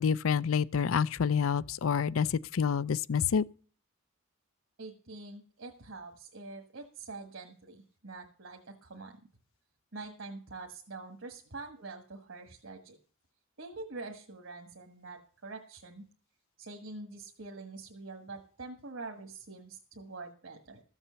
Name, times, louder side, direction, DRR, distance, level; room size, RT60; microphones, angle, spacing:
voice 1, 0.0-3.4, left 6 dB, 70° left, 0.5 m, -28 dB
voice 2, 4.8-9.2 9.9-13.0 13.6-16.1 16.6-20.8, right 3 dB, 65° right, 1.5 m, -45 dB
14.5 x 7.2 x 6.9 m
head